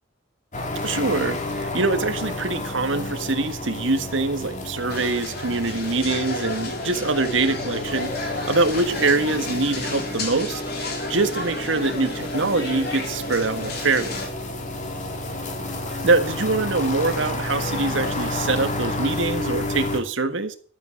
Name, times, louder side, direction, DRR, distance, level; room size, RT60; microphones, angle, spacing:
sound 1, 0.5-20.0, left 2 dB, 40° left, 2.3 m, -31 dB
voice 1, 0.8-14.2 16.0-20.5, right 3 dB, 75° right, 8 dB, 1.6 m, -24 dB
sound 2, 4.9-14.3, left 2 dB, 55° left, 3.5 m, -32 dB
12.0 x 9.2 x 6.4 m, 0.42 s
head